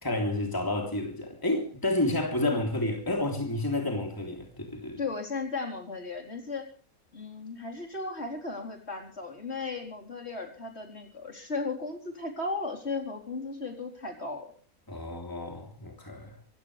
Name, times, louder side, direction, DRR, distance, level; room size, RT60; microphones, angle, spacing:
voice 1, 0.0-5.0 14.9-16.4, left 1 dB, 15° left, 3.5 m, -30 dB
voice 2, 5.0-6.7 7.1-14.5, left 3 dB, 45° left, 4.6 m, -35 dB
25.5 x 16.0 x 3.3 m
omnidirectional pair, 1.5 m